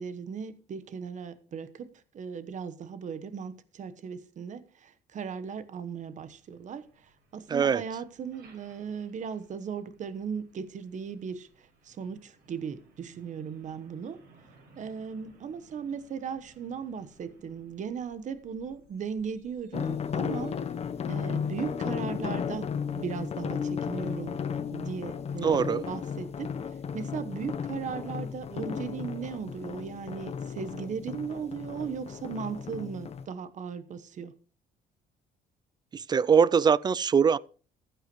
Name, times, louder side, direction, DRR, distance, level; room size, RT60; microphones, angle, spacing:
voice 1, 0.0-1.9 2.1-14.2 14.8-20.6 21.1-22.7 22.9-24.4 24.7-26.5 26.9-34.3, right 6 dB, 45° right, 1.1 m, -37 dB
Truck, 5.6-23.2, right 2 dB, 80° right, 5.5 m, -62 dB
voice 2, 7.5-7.8 25.4-25.9 35.9-37.4, right 6 dB, 25° right, 0.4 m, -22 dB
sound 1, 19.7-33.2, left 7 dB, 40° left, 0.9 m, -34 dB
15.0 x 9.0 x 3.1 m
cardioid pair, 110°, 17 cm